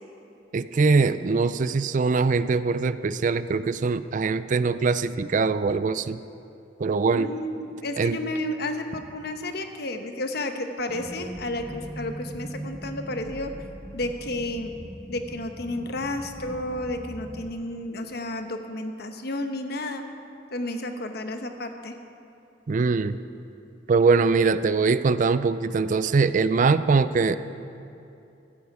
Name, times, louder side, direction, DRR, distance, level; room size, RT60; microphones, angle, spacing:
voice 1, 0.5-6.2 6.8-7.3 8.0-8.2 22.7-23.2 23.9-27.4, right 4 dB, 45° right, 14 dB, 0.4 m, -22 dB
voice 2, 7.1-13.5 13.9-14.7 15.1-20.0 20.5-21.9, left 1 dB, 60° left, 6 dB, 1.1 m, -32 dB
sound 1, 10.9-17.5, right 1 dB, 5° right, 0.9 m, -40 dB
15.5 x 13.5 x 4.9 m, 2.7 s
head